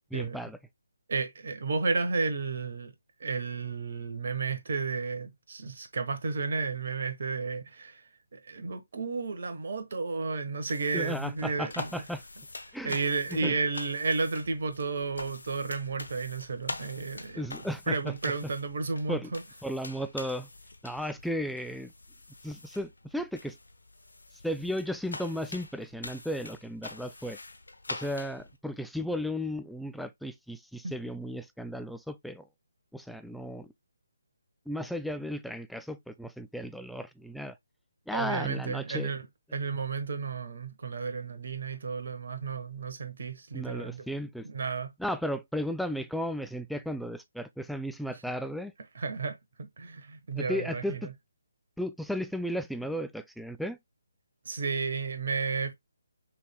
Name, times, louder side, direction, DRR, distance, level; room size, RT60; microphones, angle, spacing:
voice 1, 0.1-0.6 10.9-12.2 12.7-13.0 13.3-13.6 17.4-18.1 19.1-19.3 19.6-20.5 20.8-21.9 22.4-23.6 24.4-27.4 27.9-32.5 32.9-33.7 34.7-37.5 38.1-39.1 43.5-44.5 45.0-48.7 50.4-51.1 51.8-53.8, equal, ahead, 0.3 m, -35 dB
voice 2, 1.1-2.9 3.2-8.0 8.3-12.0 12.8-19.4 30.8-30.9 38.1-39.3 39.5-44.0 44.4-44.9 48.9-49.4 49.8-51.1 54.4-55.7, right 4 dB, 50° right, 1.1 m, -32 dB
sound 1, 10.6-28.6, left 2 dB, 70° left, 0.9 m, -45 dB
6.1 x 3.3 x 2.2 m
figure-of-eight pair, 145°, 0 cm